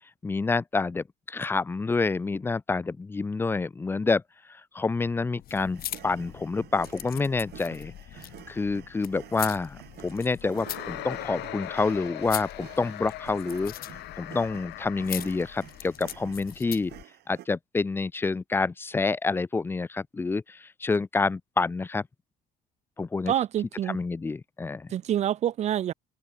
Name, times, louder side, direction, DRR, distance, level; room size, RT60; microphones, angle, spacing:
voice 1, 0.2-4.2 4.7-7.9 8.5-13.7 14.2-16.9 17.3-22.0 23.0-23.3 23.9-24.9, left 4 dB, 15° left, 0.4 m, -28 dB
sound 1, 5.4-17.0, left 13 dB, 60° left, 1.8 m, -42 dB
sound 2, 5.7-17.5, right 14 dB, 70° right, 6.5 m, -49 dB
sound 3, 10.5-15.9, left 18 dB, 80° left, 0.9 m, -40 dB
voice 2, 23.3-24.0 24.9-25.9, right 11 dB, 40° right, 0.5 m, -27 dB
open air
cardioid pair, 145°, 17 cm